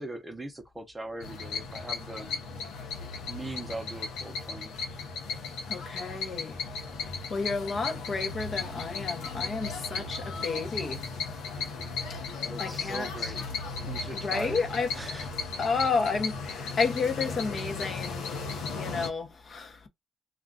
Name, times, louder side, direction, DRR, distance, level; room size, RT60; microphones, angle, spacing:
voice 1, 0.0-2.3 3.3-4.8 12.4-13.4 13.9-14.6 14.9-15.3, right 2 dB, 15° right, 0.6 m, -40 dB
sound 1, 1.2-19.1, left 4 dB, 90° left, 0.7 m, -36 dB
voice 2, 5.7-6.6 7.3-11.1 12.1-12.2 12.6-13.3 14.1-14.9 15.6-18.3 18.7-19.9, left 4 dB, 45° left, 0.7 m, -31 dB
2.4 x 2.3 x 3.7 m
cardioid pair, 90°, 0 cm